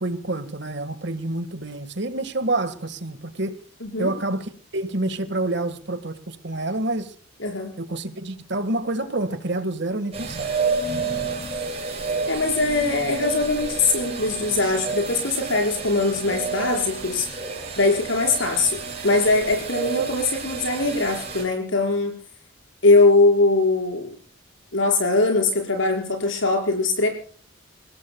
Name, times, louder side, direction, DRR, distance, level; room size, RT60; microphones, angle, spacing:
voice 1, 0.0-3.6 4.0-7.1 7.8-10.5, right 2 dB, 60° right, 12 dB, 1.7 m, -28 dB
voice 2, 3.8-4.1 7.4-7.7 12.3-17.3 17.8-22.1 22.8-24.1 24.7-27.1, left 3 dB, 70° left, 3 dB, 5.5 m, -21 dB
sound 1, 10.1-21.4, right 4 dB, 30° right, 5.6 m, -30 dB
29.5 x 17.0 x 2.3 m, 0.43 s
head